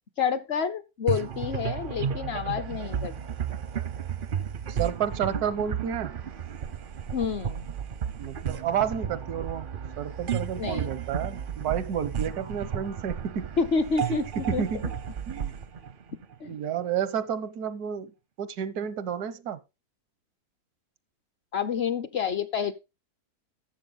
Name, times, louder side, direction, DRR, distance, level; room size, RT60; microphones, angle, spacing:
voice 1, 0.2-3.1 7.1-7.7 10.6-10.9 13.6-14.6 16.4-16.6 21.5-22.7, left 6 dB, 55° left, 0.8 m, -28 dB
sound 1, 1.1-16.7, right 7 dB, 55° right, 0.6 m, -33 dB
voice 2, 4.7-6.2 8.2-9.7 10.0-13.5 14.1-14.9 15.3-15.5 16.5-18.1 18.4-19.6, right 8 dB, 90° right, 1.4 m, -31 dB
12.5 x 7.4 x 3.9 m
omnidirectional pair, 1.6 m